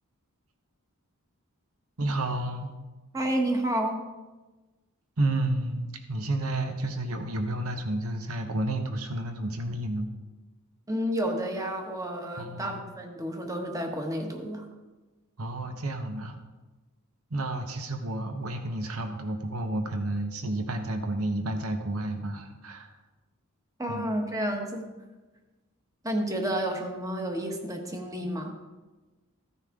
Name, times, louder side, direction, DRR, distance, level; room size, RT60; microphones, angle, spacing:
voice 1, 2.0-2.7 5.2-10.1 12.4-12.8 15.4-16.4 17.3-22.9 23.9-24.1, right 1 dB, 75° right, 5 dB, 1.1 m, -31 dB
voice 2, 3.1-4.1 10.9-14.7 23.8-24.9 26.0-28.5, right 1 dB, 15° right, 3 dB, 1.3 m, -30 dB
15.0 x 9.7 x 3.7 m, 1.2 s
head